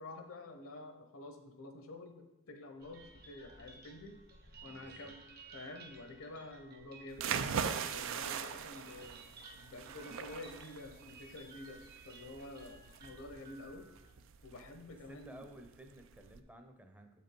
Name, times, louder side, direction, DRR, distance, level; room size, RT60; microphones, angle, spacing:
voice 1, 0.0-4.2 4.6-5.2 5.5-9.2 9.6-13.9 14.4-15.5, left 2 dB, 75° left, 7 dB, 1.0 m, -49 dB
sound 1, 2.8-14.1, right 3 dB, 50° right, 1.0 m, -56 dB
voice 2, 4.6-5.1 14.9-17.1, right 1 dB, 10° right, 5 dB, 0.7 m, -55 dB
sound 2, 7.1-16.4, right 7 dB, 65° right, 0.4 m, -41 dB
7.3 x 5.2 x 4.5 m, 0.91 s
head